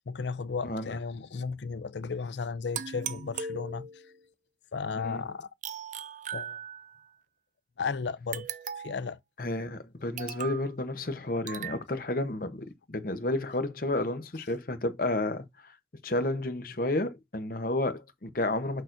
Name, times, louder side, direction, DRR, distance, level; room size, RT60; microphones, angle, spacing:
voice 1, 0.0-4.0 4.7-5.5 6.3-6.6 7.8-8.5 8.8-9.2, left 5 dB, 80° left, 0.5 m, -34 dB
voice 2, 0.6-1.0 5.0-5.2 9.4-15.7 16.0-18.8, left 2 dB, 50° left, 0.9 m, -31 dB
sound 1, 2.7-4.2 5.6-7.1 8.3-9.1 10.2-10.7 11.5-11.8, right 7 dB, 45° right, 0.5 m, -38 dB
6.5 x 6.1 x 2.6 m
head